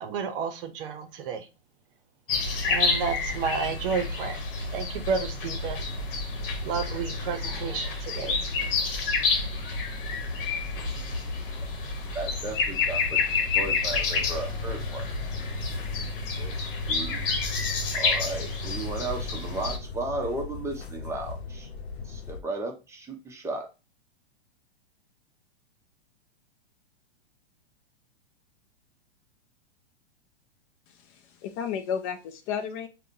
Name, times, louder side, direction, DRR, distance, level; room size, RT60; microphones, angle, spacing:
voice 1, 0.0-1.5 2.6-4.4 4.7-5.9 6.6-8.4, right 6 dB, 60° right, 0.7 m, -31 dB
sound 1, 2.3-19.8, left 4 dB, 55° left, 1.0 m, -29 dB
voice 2, 12.1-13.2 13.5-15.1 16.4-16.5 16.9-17.2 17.9-21.7 22.0-23.7, right 2 dB, 10° right, 0.7 m, -35 dB
sound 2, 14.0-22.4, left 4 dB, 75° left, 0.8 m, -39 dB
voice 3, 30.9-32.9, left 7 dB, 35° left, 0.4 m, -33 dB
3.6 x 2.2 x 2.7 m
hypercardioid pair, 110°, 31 cm